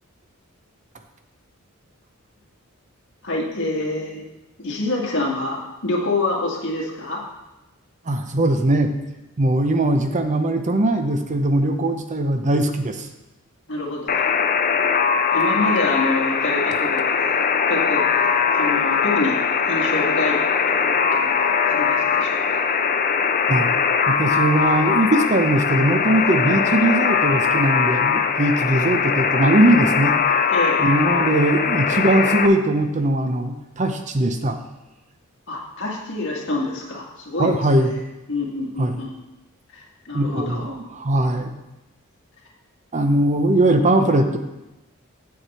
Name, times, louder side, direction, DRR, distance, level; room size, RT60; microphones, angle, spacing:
voice 1, 3.2-4.2 4.6-7.2 13.7-14.3 15.3-19.4 19.7-20.4 20.7-22.7 26.2-26.3 30.5-30.8 35.5-37.9 38.3-39.1 39.7-40.7, left 2 dB, 60° left, -2 dB, 1.9 m, -27 dB
voice 2, 8.1-9.0 9.4-13.1 23.5-23.7 24.1-30.1 30.8-34.6 37.4-37.9 38.8-39.0 40.1-41.5 42.9-44.4, right 1 dB, 35° right, 7 dB, 0.6 m, -20 dB
Alarm, 14.1-32.5, left 6 dB, 40° left, 0.5 m, -21 dB
8.2 x 7.9 x 4.3 m, 1.0 s
head